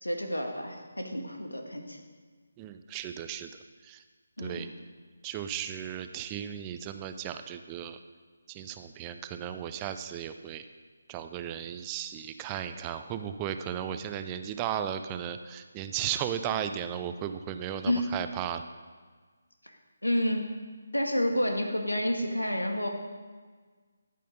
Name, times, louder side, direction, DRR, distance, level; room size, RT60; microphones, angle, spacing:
voice 1, 0.0-2.0 4.4-4.7 17.8-18.1 20.0-20.4 20.9-22.9, equal, 85° left, 3 dB, 1.8 m, -29 dB
voice 2, 2.6-3.5 3.8-4.0 4.4-4.7 5.2-8.0 8.5-10.6 11.1-18.6, right 9 dB, 20° right, 9 dB, 0.5 m, -35 dB
13.5 x 8.5 x 5.3 m, 1.5 s
figure-of-eight pair, 150°, 0 cm